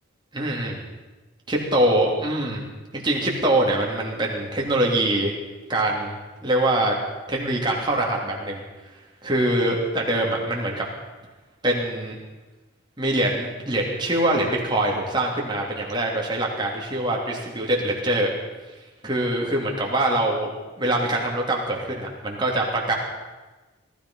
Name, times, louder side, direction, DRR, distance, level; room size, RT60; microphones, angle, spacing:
voice 1, 0.3-0.8 1.5-2.6 2.9-5.3 5.7-7.0 7.3-8.6 9.2-10.8 11.6-12.2 13.0-18.3 19.0-20.5 20.8-22.9, right 1 dB, 20° right, -2 dB, 2.9 m, -23 dB
18.5 x 13.5 x 5.6 m, 1.2 s
head